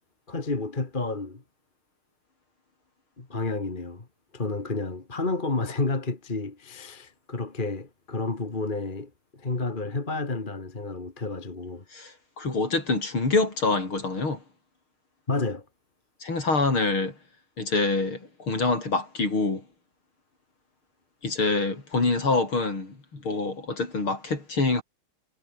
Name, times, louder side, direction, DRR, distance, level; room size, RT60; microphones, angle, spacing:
voice 1, 0.3-1.4 3.2-4.1 4.3-9.1 9.4-11.8 15.3-15.6, left 3 dB, 25° left, 2.1 m, -30 dB
voice 2, 11.9-14.4 16.2-17.1 17.6-19.6 21.2-24.8, left 3 dB, 75° left, 6.7 m, -26 dB
omnidirectional pair, 2.3 m